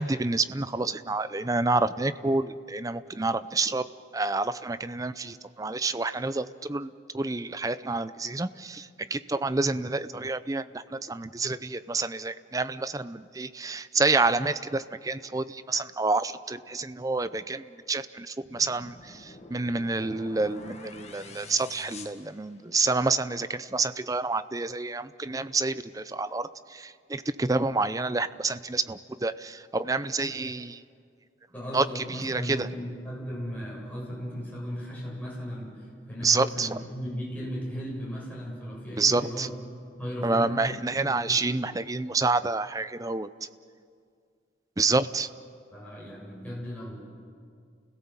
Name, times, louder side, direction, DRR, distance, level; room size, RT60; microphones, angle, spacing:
voice 1, 0.0-3.9 4.1-30.8 31.7-32.7 36.2-36.8 39.0-39.5 40.2-43.3 44.8-45.3, right 3 dB, 20° right, 14 dB, 0.5 m, -28 dB
sound 1, 18.4-23.0, left 3 dB, 35° left, 1.6 m, -47 dB
voice 2, 31.5-39.6 40.0-41.7 45.7-47.0, equal, 10° left, -6 dB, 7.3 m, -36 dB
30.0 x 17.0 x 7.4 m, 2.2 s
head